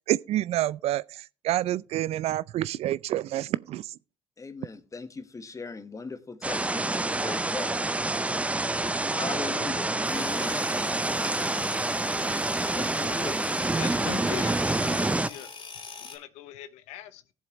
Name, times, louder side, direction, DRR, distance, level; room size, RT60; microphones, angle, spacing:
voice 1, 0.1-3.9, right 14 dB, 65° right, 0.4 m, -28 dB
voice 2, 4.4-7.8 9.2-10.9 12.7-13.6, left 4 dB, 30° left, 1.4 m, -38 dB
sound 1, 6.4-15.3, right 2 dB, 10° right, 0.5 m, -27 dB
sound 2, 10.0-16.2, left 5 dB, 50° left, 3.2 m, -42 dB
voice 3, 13.7-15.5 16.0-17.2, left 12 dB, 80° left, 0.7 m, -41 dB
16.5 x 7.3 x 3.1 m
hypercardioid pair, 60°, 11 cm